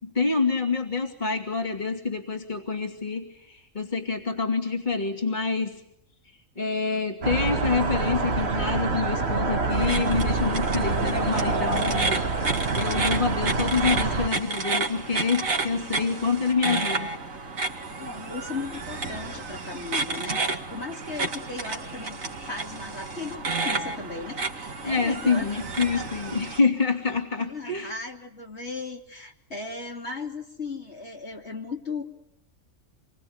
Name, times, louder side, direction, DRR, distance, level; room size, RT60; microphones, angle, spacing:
voice 1, 0.0-5.8 6.6-12.4 12.7-17.1 24.8-27.9, left 4 dB, 35° left, 3 dB, 3.0 m, -27 dB
sound 1, 7.2-14.3, right 3 dB, 50° right, 1.8 m, -26 dB
sound 2, 9.7-26.6, right 3 dB, 85° right, 2.6 m, -31 dB
voice 2, 17.9-25.6 25.9-26.1 26.5-26.6 27.4-32.0, left 3 dB, 55° left, 0 dB, 3.3 m, -36 dB
27.5 x 22.5 x 9.7 m, 0.76 s
omnidirectional pair, 1.4 m